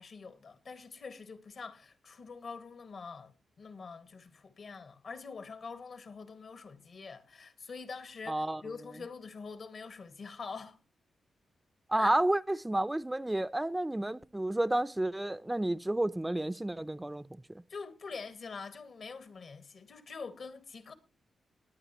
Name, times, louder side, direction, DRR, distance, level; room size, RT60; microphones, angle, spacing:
voice 1, 0.0-10.8 12.0-12.1 17.7-20.9, left 4 dB, 60° left, 1.8 m, -45 dB
voice 2, 8.3-8.6 11.9-17.6, right 1 dB, 15° right, 0.6 m, -31 dB
18.5 x 9.6 x 3.1 m
cardioid pair, 60°, 0 cm